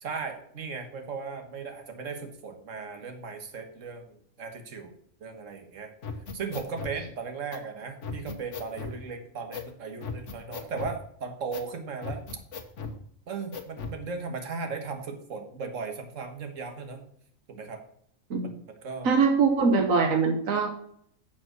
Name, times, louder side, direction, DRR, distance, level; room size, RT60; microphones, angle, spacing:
voice 1, 0.0-4.9 5.2-5.9 6.3-12.2 13.3-17.0 17.5-17.8 18.4-18.5 18.8-19.2, right 5 dB, 70° right, 6 dB, 1.7 m, -37 dB
sound 1, 6.0-7.0 7.5-7.6 8.0-9.0 9.5-9.7 10.0-11.0 11.5-11.7 12.0-13.0 13.5-14.0, left 4 dB, 65° left, 1.4 m, -37 dB
voice 2, 19.0-20.7, right 5 dB, 90° right, 5 dB, 1.5 m, -22 dB
7.5 x 7.2 x 6.2 m, 0.66 s
omnidirectional pair, 1.4 m